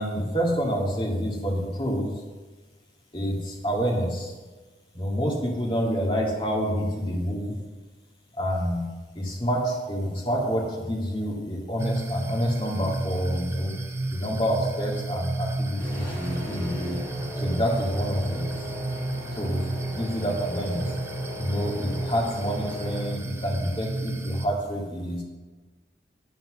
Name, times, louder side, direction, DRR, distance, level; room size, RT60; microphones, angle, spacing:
voice 1, 0.0-2.1 3.1-4.3 4.9-7.5 8.4-8.9 9.2-13.7 14.1-17.0 17.4-18.7 19.3-20.9 21.4-25.2, equal, 30° left, -2 dB, 2.2 m, -28 dB
sound 1, 11.8-24.5, right 2 dB, 15° right, 0.6 m, -32 dB
sound 2, 15.8-23.1, left 1 dB, 15° left, 3.8 m, -38 dB
8.9 x 8.1 x 6.3 m, 1.3 s
head